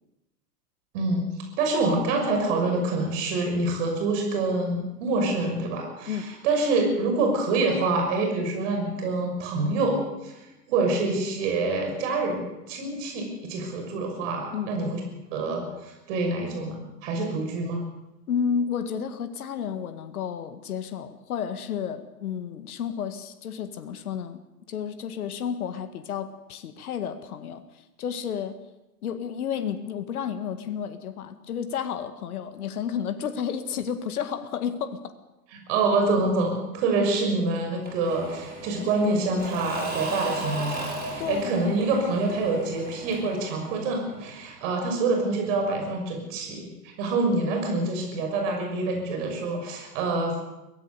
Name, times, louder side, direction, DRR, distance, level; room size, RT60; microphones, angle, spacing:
voice 1, 0.9-1.2 1.6-10.0 10.2-10.4 10.7-15.0 15.3-17.8 35.5-50.4, right 3 dB, 50° right, 2 dB, 6.2 m, -26 dB
voice 2, 18.3-24.4 24.7-28.6 29.0-35.1 41.2-41.6, left 7 dB, 65° left, 9 dB, 2.0 m, -31 dB
Engine / Mechanisms / Drill, 37.8-44.5, right 2 dB, 20° right, 6.3 m, -36 dB
23.0 x 17.5 x 6.9 m, 0.97 s
figure-of-eight pair, 100°, 48 cm